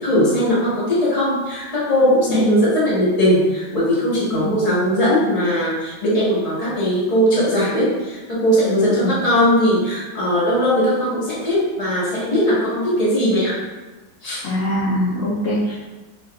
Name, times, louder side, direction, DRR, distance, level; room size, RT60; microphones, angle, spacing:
voice 1, 0.0-13.6 14.2-14.4, equal, 25° left, -8 dB, 1.1 m, -19 dB
voice 2, 14.4-15.7, equal, 60° left, -7 dB, 0.9 m, -22 dB
4.7 x 3.0 x 2.3 m, 1.2 s
omnidirectional pair, 1.9 m